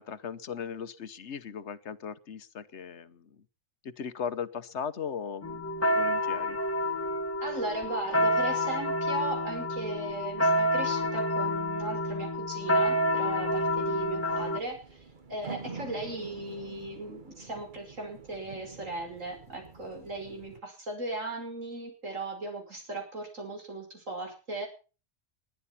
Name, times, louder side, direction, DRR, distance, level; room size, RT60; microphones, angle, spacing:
voice 1, 0.0-3.4 3.8-5.7 5.9-6.6, left 7 dB, 65° left, 13 dB, 1.2 m, -38 dB
sound 1, 5.4-14.6, left 1 dB, 10° left, 1.3 m, -28 dB
voice 2, 7.4-15.0 15.3-24.7, right 2 dB, 90° right, 3 dB, 5.8 m, -37 dB
sound 2, 13.2-20.6, right 4 dB, 40° right, 1.5 m, -47 dB
21.0 x 10.5 x 5.7 m, 0.36 s
omnidirectional pair, 1.3 m